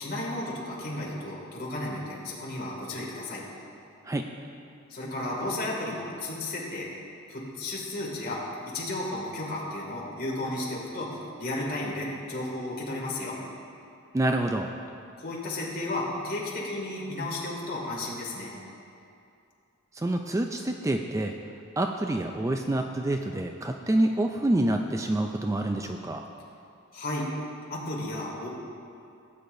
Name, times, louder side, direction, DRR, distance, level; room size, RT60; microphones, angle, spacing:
voice 1, 0.0-3.4 4.9-6.9 7.3-13.4 15.2-18.5 26.9-27.3 27.7-28.5, left 1 dB, 45° left, -4 dB, 2.3 m, -33 dB
voice 2, 14.1-14.7 19.9-21.3 21.8-26.2, right 1 dB, 15° right, 4 dB, 0.3 m, -27 dB
17.0 x 8.5 x 2.6 m, 2.6 s
head